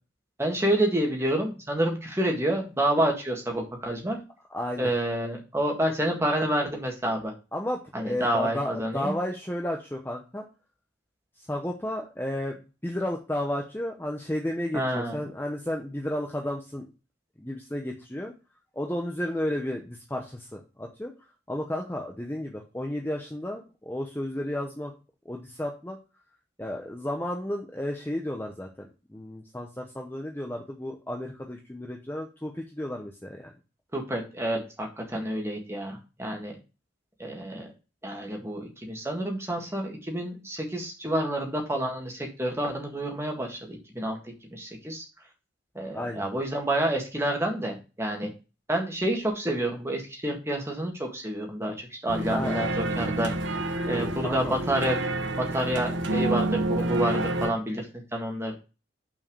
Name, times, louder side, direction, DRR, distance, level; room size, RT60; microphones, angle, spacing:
voice 1, 0.4-4.2 4.8-7.3 7.9-9.1 14.7-15.2 33.9-36.5 37.2-37.7 38.0-45.0 45.8-48.3 48.7-53.3 53.9-55.0 55.4-58.5, right 1 dB, 15° right, 1 dB, 1.8 m, -29 dB
voice 2, 4.5-4.9 7.5-10.4 11.4-16.9 17.4-18.3 18.7-21.1 21.5-24.9 25.2-26.0 26.6-33.5 45.9-46.3 52.3-52.6 53.9-54.6, left 1 dB, 10° left, 1 dB, 0.8 m, -33 dB
sound 1, 52.1-57.5, right 1 dB, 70° right, 1.0 m, -28 dB
6.1 x 4.6 x 6.1 m, 0.31 s
head